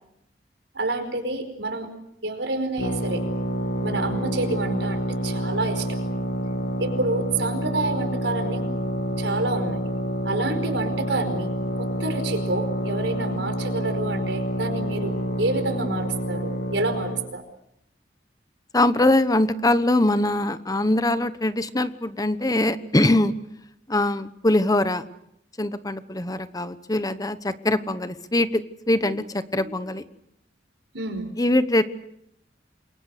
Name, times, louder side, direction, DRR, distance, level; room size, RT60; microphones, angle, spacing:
voice 1, 0.7-1.9 2.2-3.3 3.8-6.0 6.8-8.7 9.2-9.8 10.2-17.4 29.1-29.2 29.6-29.7 30.9-31.3, right 2 dB, 90° right, 7 dB, 5.0 m, -28 dB
sound 1, 2.8-17.3, right 1 dB, 70° left, 2.9 m, -28 dB
voice 2, 18.7-23.3 23.9-25.0 25.6-30.0 31.4-31.8, left 1 dB, 20° left, 12 dB, 1.0 m, -22 dB
28.5 x 23.0 x 6.7 m, 0.79 s
head